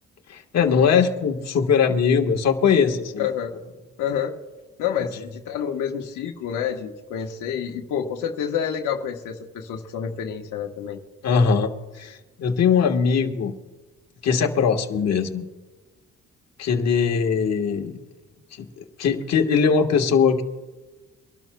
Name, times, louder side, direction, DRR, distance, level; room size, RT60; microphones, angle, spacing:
voice 1, 0.3-3.3 11.2-13.5 14.2-15.4 16.6-18.0 18.6-20.4, left 6 dB, 60° left, 3 dB, 1.5 m, -21 dB
voice 2, 3.2-3.5 4.0-4.3 4.8-11.0, left 8 dB, 85° left, 2 dB, 1.3 m, -28 dB
24.5 x 12.5 x 2.3 m, 1.2 s
cardioid pair, 90°, 30 cm